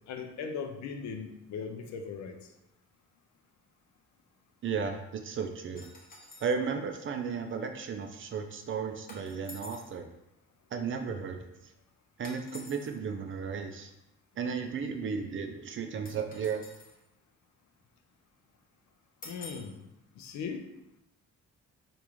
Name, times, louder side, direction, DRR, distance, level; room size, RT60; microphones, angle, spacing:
voice 1, 0.1-2.4 19.2-19.7 20.2-20.6, left 6 dB, 65° left, 6 dB, 0.5 m, -38 dB
voice 2, 4.6-5.8 6.4-10.1 10.7-11.4 12.2-13.9 14.4-16.7, right 6 dB, 45° right, 6 dB, 0.4 m, -34 dB
sound 1, 5.7-6.6 9.1-9.9 12.2-12.9 16.0-17.0 19.2-19.7, left 2 dB, 30° left, 0.8 m, -48 dB
3.4 x 2.5 x 3.0 m, 0.87 s
cardioid pair, 90°, 30 cm